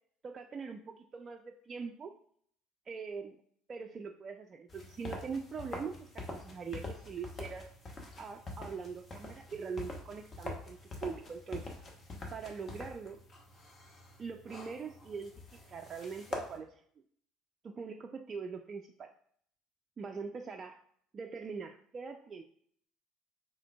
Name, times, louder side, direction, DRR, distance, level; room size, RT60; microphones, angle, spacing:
voice 1, 0.2-2.2 2.9-3.4 3.7-7.7 8.2-11.7 12.3-13.2 14.2-15.3 15.6-16.8 17.6-19.1 20.0-20.8 21.1-22.4, right 5 dB, 35° right, 3 dB, 0.3 m, -42 dB
sound 1, 4.7-16.6, left 2 dB, 35° left, 1.0 m, -45 dB
4.3 x 3.7 x 2.2 m, 0.63 s
hypercardioid pair, 60°, 0 cm